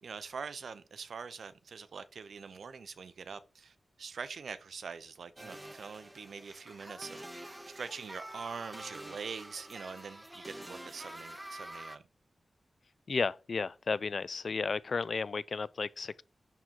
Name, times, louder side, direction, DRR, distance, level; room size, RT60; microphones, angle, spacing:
voice 1, 0.0-12.0, right 5 dB, 80° right, 0.7 m, -44 dB
sound 1, 5.4-12.0, right 1 dB, 15° right, 0.9 m, -47 dB
voice 2, 13.1-16.2, left 4 dB, 60° left, 0.4 m, -33 dB
11.0 x 3.8 x 4.5 m
wide cardioid pair, 85°, 0 cm